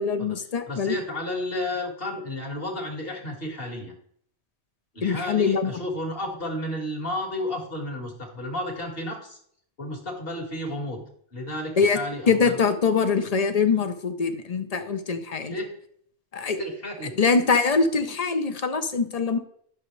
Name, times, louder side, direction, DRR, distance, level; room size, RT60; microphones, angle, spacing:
voice 1, 0.0-0.9 5.0-5.7 11.8-12.0 12.3-15.5 16.3-16.6 17.2-19.4, left 5 dB, 40° left, 9 dB, 0.8 m, -23 dB
voice 2, 0.7-3.9 4.9-9.4 9.8-11.0 11.3-12.6 15.4-15.7 16.6-17.2, left 1 dB, 55° left, 0 dB, 2.2 m, -32 dB
11.5 x 6.3 x 3.3 m, 0.65 s
omnidirectional pair, 1.2 m